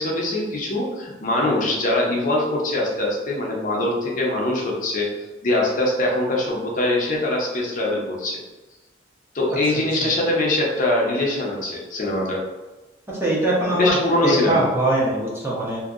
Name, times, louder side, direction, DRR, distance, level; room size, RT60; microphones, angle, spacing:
voice 1, 0.0-5.1 5.4-8.4 9.3-12.4 13.7-14.7, left 1 dB, 45° left, -3 dB, 0.7 m, -22 dB
voice 2, 13.1-14.0 14.2-15.8, right 1 dB, 15° right, -6 dB, 0.8 m, -22 dB
2.8 x 2.7 x 2.5 m, 1.1 s
head